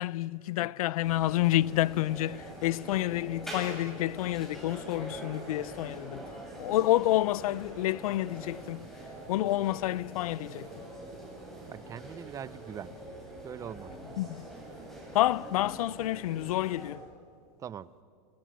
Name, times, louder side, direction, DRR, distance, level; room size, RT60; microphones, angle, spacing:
voice 1, 0.0-6.2 6.6-8.9 9.3-10.9 14.2-14.5 15.1-17.0, left 15 dB, 70° left, 0.6 m, -29 dB
sound 1, 1.0-16.9, right 1 dB, ahead, 7.5 m, -44 dB
voice 2, 11.7-12.9 13.4-13.9 17.6-17.9, right 8 dB, 15° right, 0.6 m, -41 dB
28.5 x 27.5 x 6.3 m
supercardioid pair, 145°, 19 cm